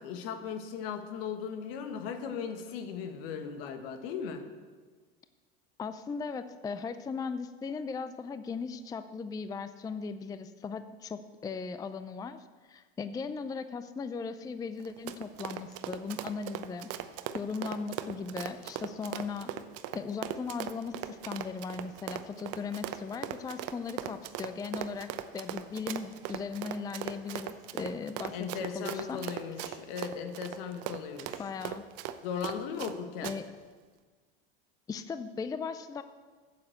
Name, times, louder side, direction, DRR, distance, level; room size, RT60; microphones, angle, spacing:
voice 1, 0.0-4.4 28.3-31.4 32.2-33.3, left 7 dB, 70° left, 7 dB, 1.5 m, -37 dB
voice 2, 5.8-16.9 17.3-19.5 19.9-28.4 28.7-29.2 31.4-31.8 33.2-33.4 34.9-36.0, left 5 dB, 15° left, 11 dB, 0.4 m, -38 dB
Run, 14.8-32.9 33.2-33.4, right 11 dB, 55° right, 0.8 m, -39 dB
9.3 x 7.6 x 7.8 m, 1.5 s
supercardioid pair, 100°, 30 cm